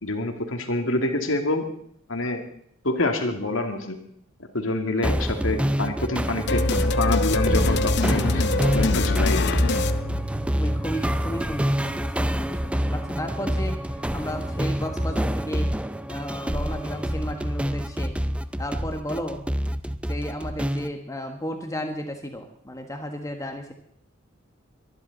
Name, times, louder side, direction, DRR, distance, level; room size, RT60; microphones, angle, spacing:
voice 1, 0.0-1.6 2.1-2.4 2.8-4.0 4.5-6.6 7.0-9.6, left 2 dB, 75° left, 5 dB, 2.2 m, -26 dB
sound 1, 5.0-20.9, equal, 5° right, 0.5 m, -27 dB
sound 2, 6.5-10.8, left 2 dB, 60° left, 0.7 m, -24 dB
voice 2, 10.5-15.7 16.1-18.2 18.6-19.4 19.8-23.7, equal, 15° left, 4 dB, 1.4 m, -34 dB
24.0 x 11.0 x 4.0 m, 0.66 s
head